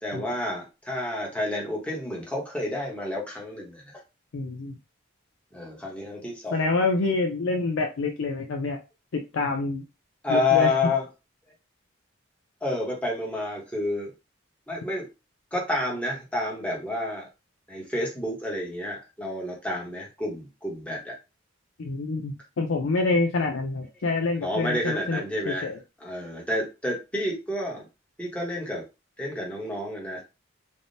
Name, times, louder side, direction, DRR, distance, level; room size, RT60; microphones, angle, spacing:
voice 1, 0.0-4.0 5.5-6.6 10.2-11.0 12.6-14.1 14.7-15.1 15.5-17.3 17.7-21.2 24.4-25.7 26.0-27.9 28.2-28.8 29.2-30.2, left 2 dB, 5° left, -3 dB, 0.9 m, -29 dB
voice 2, 4.3-4.8 6.5-8.8 9.1-9.8 10.3-10.7 21.8-25.8, left 3 dB, 80° left, 3 dB, 0.5 m, -27 dB
3.4 x 2.1 x 2.6 m, 0.27 s
head